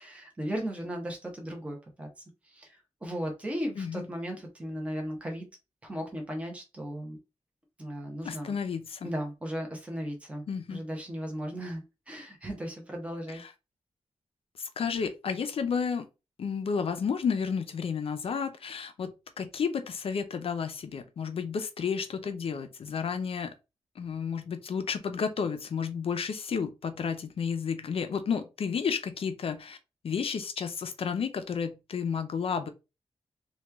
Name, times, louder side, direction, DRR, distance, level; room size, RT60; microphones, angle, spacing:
voice 1, 0.0-2.1 2.4-5.5 5.8-7.2 7.8-8.5 9.0-10.4 10.7-13.4, equal, 10° right, 0.7 m, -36 dB
voice 2, 8.2-9.1 10.5-10.8 13.3-13.5 14.6-16.1 16.4-23.5 24.0-29.8 30.0-32.7, left 6 dB, 55° left, 0.4 m, -32 dB
3.0 x 2.3 x 3.4 m
wide cardioid pair, 170°, 11 cm